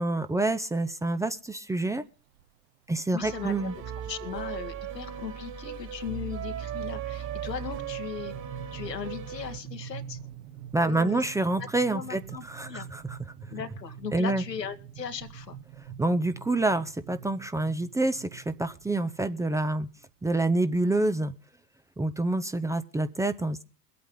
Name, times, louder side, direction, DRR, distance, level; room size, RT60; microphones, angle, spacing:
voice 1, 0.0-2.0 2.9-3.7 10.7-13.2 14.1-14.4 16.0-19.9 20.2-21.3 22.0-23.6, right 2 dB, 5° right, 10 dB, 0.6 m, -27 dB
sound 1, 1.3-1.5 2.4-2.5 2.9-3.0 3.3-3.6 4.0-20.3, right 9 dB, 60° right, 1.4 m, -45 dB
voice 2, 3.1-3.7 4.1-8.3 8.7-10.2 10.8-11.2 11.6-12.9 13.5-15.6, left 7 dB, 90° left, 6 dB, 1.7 m, -38 dB
sound 2, 3.2-9.6, right 9 dB, 40° right, 3.1 m, -37 dB
22.5 x 8.6 x 3.8 m, 0.34 s
hypercardioid pair, 85°, 48 cm